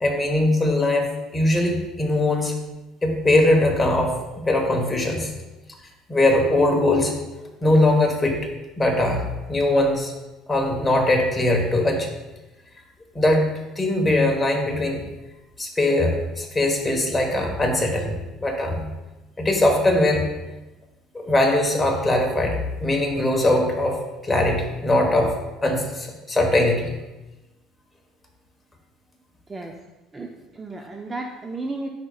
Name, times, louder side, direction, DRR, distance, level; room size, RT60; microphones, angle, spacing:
voice 1, 0.0-2.6 3.0-5.3 6.1-7.1 7.6-8.4 8.8-9.2 9.5-10.1 10.5-12.1 13.1-13.5 13.7-15.0 15.6-18.8 19.4-20.3 21.1-25.4 25.6-26.9, left 1 dB, 15° left, 1 dB, 1.3 m, -21 dB
voice 2, 29.5-29.8 30.1-31.9, right 2 dB, 20° right, 2 dB, 0.5 m, -33 dB
9.9 x 5.0 x 2.4 m, 1.1 s
cardioid pair, 130°, 0 cm